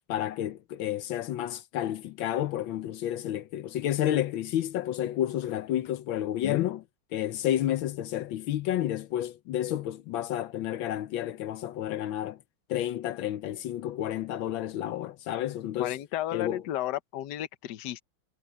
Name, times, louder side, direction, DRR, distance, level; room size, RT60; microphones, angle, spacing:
voice 1, 0.1-6.8 7.1-12.4 12.7-16.0 16.3-16.6, left 12 dB, 80° left, 1.5 m, -30 dB
voice 2, 15.8-18.0, left 13 dB, 65° left, 1.4 m, -33 dB
omnidirectional pair, 2.1 m